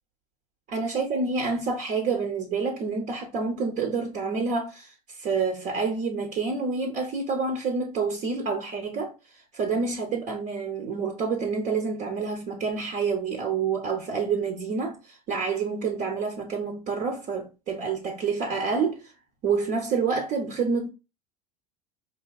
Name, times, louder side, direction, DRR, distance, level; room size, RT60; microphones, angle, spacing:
voice 1, 0.7-19.1 19.4-20.9, right 4 dB, 45° right, 0.9 m, -28 dB
4.7 x 2.7 x 2.3 m
supercardioid pair, 105°, 19 cm